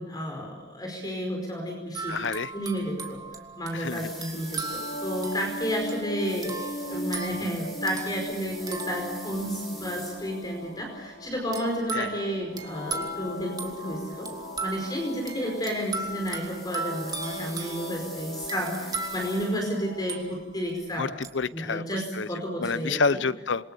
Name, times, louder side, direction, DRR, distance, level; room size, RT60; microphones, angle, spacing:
voice 1, 0.0-2.2 2.5-3.2 3.5-14.3 14.6-21.1 21.5-23.0, equal, 20° left, 1 dB, 4.9 m, -31 dB
sound 1, 1.9-9.8 11.5-20.7 21.2-21.4, right 3 dB, 20° right, 2.8 m, -38 dB
voice 2, 2.1-2.5 3.7-4.1 11.9-12.1 21.0-23.7, left 4 dB, 80° left, 17 dB, 0.8 m, -29 dB
sound 2, 3.7-10.7 12.6-19.9, right 1 dB, ahead, 5.4 m, -47 dB
sound 3, 4.4-20.3, equal, 50° left, 2.0 m, -39 dB
27.5 x 23.5 x 6.9 m, 1.2 s
head